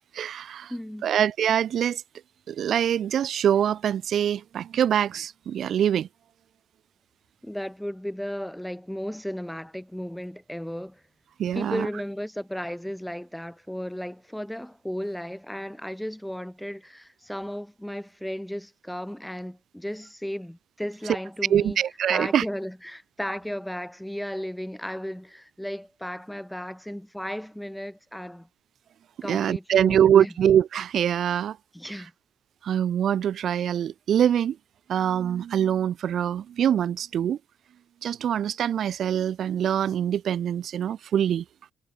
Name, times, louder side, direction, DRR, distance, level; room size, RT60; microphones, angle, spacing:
voice 1, 0.1-0.7 1.0-2.0 2.5-6.1 11.4-11.9 21.5-22.5 29.3-31.6 31.8-31.9 32.6-34.6 34.9-37.4 38.0-41.4, right 9 dB, 65° right, 2.1 m, -24 dB
voice 2, 0.7-1.1 7.4-11.0 11.5-21.8 22.1-28.5 29.2-30.3 31.7-32.1, equal, 5° left, 4.4 m, -35 dB
cardioid pair, 90°, 0 cm